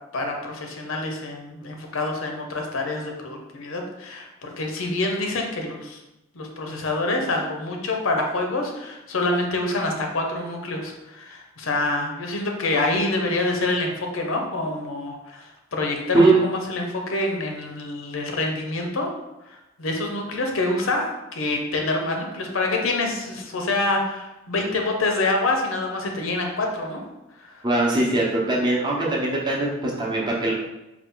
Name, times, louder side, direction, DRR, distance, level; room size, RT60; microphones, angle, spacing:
voice 1, 0.1-6.0 6.3-19.1 19.4-27.0 27.4-27.6, left 2 dB, 85° left, 2 dB, 0.7 m, -26 dB
voice 2, 27.6-30.5, right 2 dB, 20° right, -4 dB, 0.7 m, -21 dB
4.2 x 2.4 x 3.7 m, 0.96 s
head